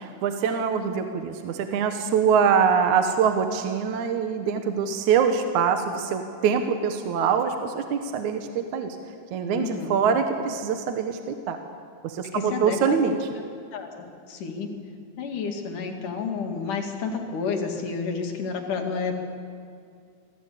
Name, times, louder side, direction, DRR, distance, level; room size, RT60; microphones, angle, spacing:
voice 1, 0.2-9.0 9.3-11.6 12.0-13.1, right 6 dB, 70° right, 6 dB, 2.5 m, -24 dB
voice 2, 9.4-9.9 12.3-13.2 13.7-14.7 15.2-19.1, left 5 dB, 70° left, 3 dB, 3.6 m, -30 dB
25.5 x 16.5 x 8.4 m, 2.3 s
omnidirectional pair, 3.8 m